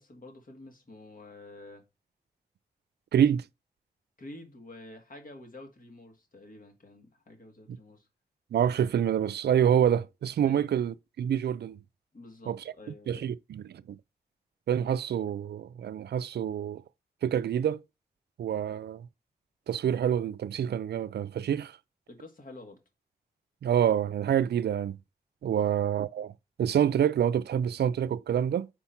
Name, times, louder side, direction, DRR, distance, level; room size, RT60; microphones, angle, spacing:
voice 1, 0.0-1.8 4.2-8.1 10.4-10.7 12.1-13.3 22.1-22.8 25.4-25.7, left 2 dB, 55° left, 1.8 m, -49 dB
voice 2, 3.1-3.4 7.7-7.8 8.5-11.8 12.5-12.6 13.1-14.0 14.7-16.8 17.2-17.8 18.4-19.1 19.7-21.8 23.6-25.0 25.4-26.3 26.6-28.7, right 9 dB, 80° right, 0.4 m, -27 dB
4.4 x 4.4 x 5.6 m
cardioid pair, 60°, 17 cm